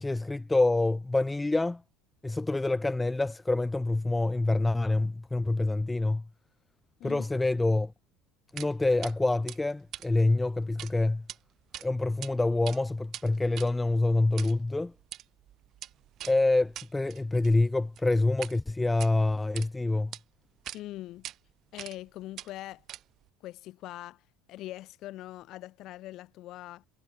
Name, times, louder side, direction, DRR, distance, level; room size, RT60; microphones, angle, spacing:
voice 1, 0.0-1.8 2.2-6.2 7.0-7.9 8.5-11.2 11.8-14.9 16.3-20.1, left 2 dB, 10° left, 1.0 m, -26 dB
sound 1, 8.6-8.7 9.0-9.1 9.5-10.9 11.2-11.4 11.7-12.3 12.6-18.6 18.9-19.7 20.1-20.2 20.6-20.8 21.2-21.4 21.8-22.1 22.3-23.3, right 12 dB, 50° right, 4.7 m, -43 dB
voice 2, 20.7-21.3 21.7-22.8 23.4-24.2 24.5-26.8, left 15 dB, 55° left, 7.8 m, -42 dB
hypercardioid pair, 75°, 0 cm